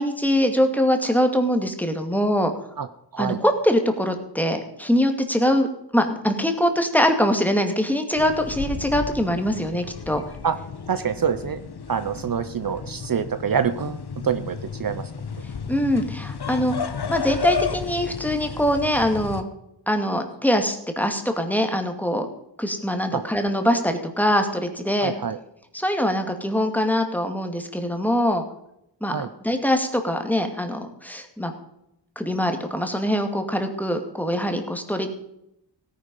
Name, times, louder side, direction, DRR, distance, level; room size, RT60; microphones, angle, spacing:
voice 1, 0.0-2.5 3.2-5.7 5.9-10.2 15.7-19.4 19.9-22.3 22.6-25.1 25.7-28.4 29.0-31.5 32.2-35.1, equal, 5° left, 5 dB, 2.3 m, -23 dB
sound 1, 8.1-19.4, left 6 dB, 60° left, 1.2 m, -33 dB
voice 2, 10.9-11.6 11.9-15.1 23.1-23.2 25.0-25.4 29.1-29.3, right 7 dB, 50° right, 11 dB, 0.8 m, -26 dB
17.0 x 10.0 x 5.4 m, 0.80 s
wide cardioid pair, 85°, 43 cm